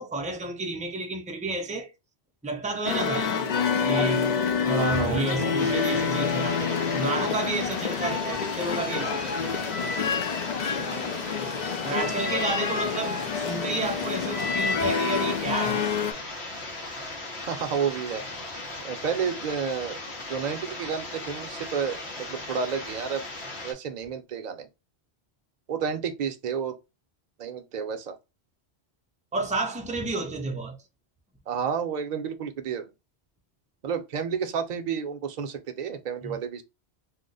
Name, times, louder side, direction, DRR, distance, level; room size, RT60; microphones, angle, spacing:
voice 1, 0.0-1.9 2.4-3.3 3.8-9.9 11.8-15.9 29.3-30.8 36.2-36.4, right 3 dB, 10° right, 0.3 m, -31 dB
sound 1, 2.8-16.1, left 6 dB, 55° left, 0.5 m, -27 dB
voice 2, 4.7-5.5 10.8-11.3 17.5-18.2 18.8-20.0 20.3-23.2 23.6-24.7 25.7-26.7 27.4-28.2 31.5-32.9 33.8-36.6, right 7 dB, 50° right, 0.6 m, -31 dB
sound 2, 5.6-23.7, left 2 dB, 85° left, 1.2 m, -38 dB
2.9 x 2.1 x 3.8 m
omnidirectional pair, 1.1 m